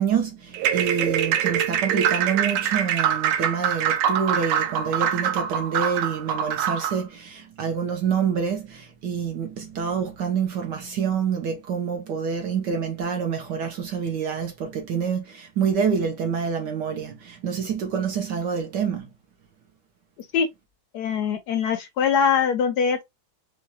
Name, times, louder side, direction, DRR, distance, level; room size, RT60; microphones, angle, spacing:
voice 1, 0.0-19.1, right 7 dB, 70° right, 1.2 m, -27 dB
sound 1, 0.5-7.0, right 9 dB, 85° right, 1.4 m, -24 dB
voice 2, 20.9-23.0, left 6 dB, 75° left, 0.9 m, -22 dB
4.6 x 2.3 x 2.7 m
omnidirectional pair, 2.2 m